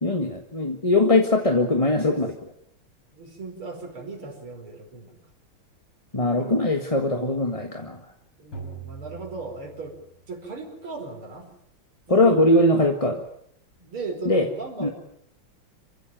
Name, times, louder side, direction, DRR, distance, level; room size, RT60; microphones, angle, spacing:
voice 1, 0.0-2.3 6.1-8.0 12.1-13.2 14.2-14.5 14.8-14.9, left 2 dB, 15° left, 3 dB, 1.5 m, -21 dB
voice 2, 3.1-5.2 6.4-6.6 8.4-9.9 10.3-11.5 12.1-12.4 13.8-14.9, right 3 dB, 80° right, 2 dB, 5.6 m, -37 dB
sound 1, 8.5-10.5, right 5 dB, 75° left, 6.7 m, -42 dB
27.5 x 16.0 x 9.1 m, 0.71 s
omnidirectional pair, 2.3 m